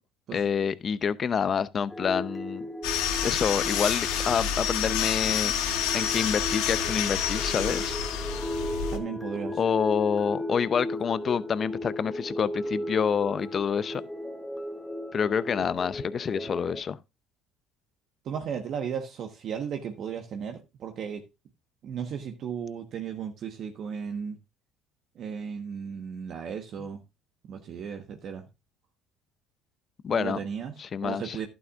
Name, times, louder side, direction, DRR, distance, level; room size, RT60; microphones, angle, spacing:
voice 1, 0.3-2.6 3.2-5.5 5.9-8.0 9.6-14.0 15.1-17.0 30.0-30.4 30.8-31.4, left 7 dB, 40° left, 0.6 m, -27 dB
sound 1, 1.9-16.8, left 1 dB, 10° left, 1.1 m, -36 dB
sound 2, 2.8-9.0, left 8 dB, 80° left, 1.7 m, -28 dB
voice 2, 8.9-9.6 18.2-21.2 21.8-24.4 25.2-27.0 27.5-28.4 30.1-30.7 31.0-31.5, right 7 dB, 55° right, 1.2 m, -35 dB
11.5 x 9.3 x 2.4 m
supercardioid pair, 85°, 0 cm